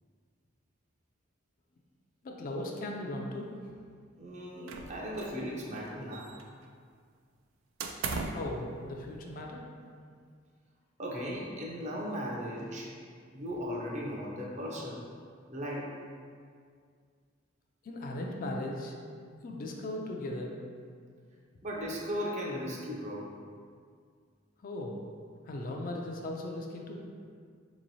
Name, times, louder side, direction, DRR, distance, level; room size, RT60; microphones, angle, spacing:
voice 1, 2.2-3.5 8.3-9.6 17.8-19.0 19.4-20.6 24.6-25.0 25.5-27.0, left 1 dB, 45° left, 0 dB, 0.4 m, -37 dB
voice 2, 4.2-6.3 11.0-12.9 13.3-15.0 15.5-15.9 21.6-23.3, equal, 35° right, -3 dB, 0.5 m, -37 dB
sound 1, 4.7-5.5 5.7-6.7 7.8-8.5, right 4 dB, 90° right, 0.3 m, -37 dB
3.9 x 3.0 x 2.6 m, 2.1 s
head